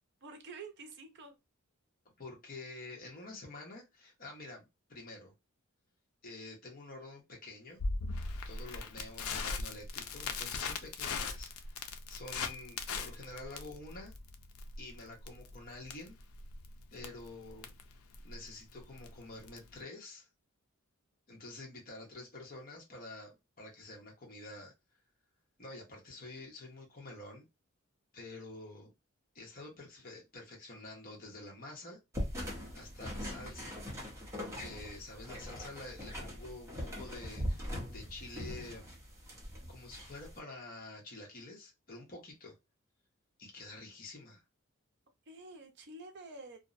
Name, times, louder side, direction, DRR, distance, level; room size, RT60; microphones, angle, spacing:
voice 1, 0.2-1.3 45.3-46.6, right 3 dB, 55° right, 0.5 m, -48 dB
voice 2, 2.2-5.3 6.2-7.8 8.4-11.5 12.1-14.1 14.8-16.2 16.9-17.7 18.2-20.3 21.3-24.7 25.6-27.4 28.1-28.9 29.3-32.0 32.7-33.8 34.4-38.9 39.7-42.5 43.4-44.4, left 2 dB, 40° left, 0.9 m, -48 dB
Crackle, 7.8-19.8, left 4 dB, 80° left, 0.4 m, -40 dB
sound 1, 32.1-40.4, equal, 15° right, 0.7 m, -41 dB
2.6 x 2.0 x 2.4 m
head